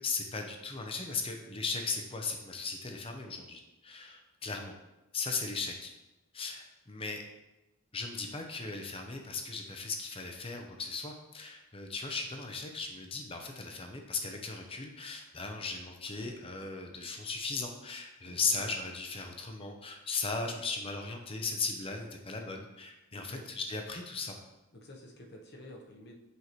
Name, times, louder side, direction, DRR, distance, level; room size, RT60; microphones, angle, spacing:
voice 1, 0.0-4.7 5.1-5.9 6.3-7.2 7.9-24.4, left 4 dB, 25° left, 4 dB, 0.7 m, -37 dB
voice 2, 18.3-18.6 23.1-23.5 24.7-26.2, left 1 dB, 45° left, 0 dB, 1.0 m, -50 dB
8.1 x 4.7 x 3.1 m, 1.0 s
head